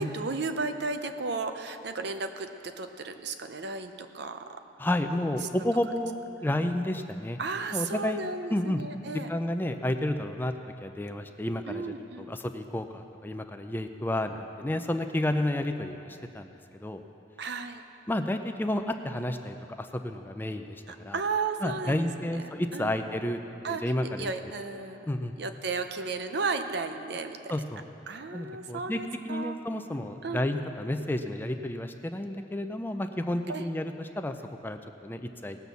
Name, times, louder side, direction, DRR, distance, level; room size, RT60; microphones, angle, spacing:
voice 1, 0.0-4.6 7.4-9.3 11.7-12.3 17.4-17.8 20.9-22.3 22.7-22.9 23.6-25.1 25.4-27.5 28.1-29.6 30.2-30.4 33.5-33.6, right 4 dB, 60° right, 8 dB, 0.7 m, -34 dB
voice 2, 4.8-7.4 7.7-8.2 8.5-8.8 9.3-10.5 10.8-16.5 16.8-17.0 18.1-21.2 21.6-24.3 25.1-25.3 27.5-27.8 28.3-29.0 29.2-34.4 34.6-35.6, left 1 dB, 10° left, 7 dB, 0.4 m, -31 dB
18.0 x 6.2 x 6.9 m, 2.7 s
head